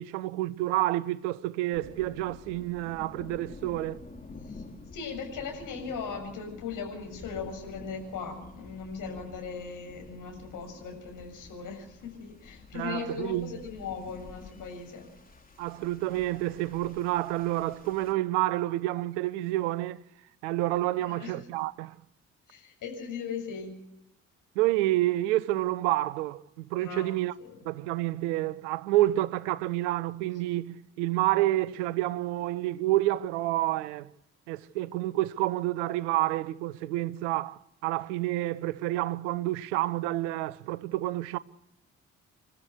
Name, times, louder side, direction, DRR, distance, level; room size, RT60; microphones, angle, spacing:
voice 1, 0.0-4.0 12.7-13.5 15.6-20.0 20.4-21.9 24.6-27.3 27.6-34.1 34.5-41.4, right 16 dB, 70° right, 0.8 m, -29 dB
sound 1, 1.7-18.1, left 3 dB, 25° left, 3.8 m, -49 dB
voice 2, 4.9-15.1 21.0-21.3 22.5-23.7 26.8-27.6, left 5 dB, 60° left, 7.2 m, -38 dB
29.0 x 13.5 x 8.0 m
figure-of-eight pair, 45°, 36 cm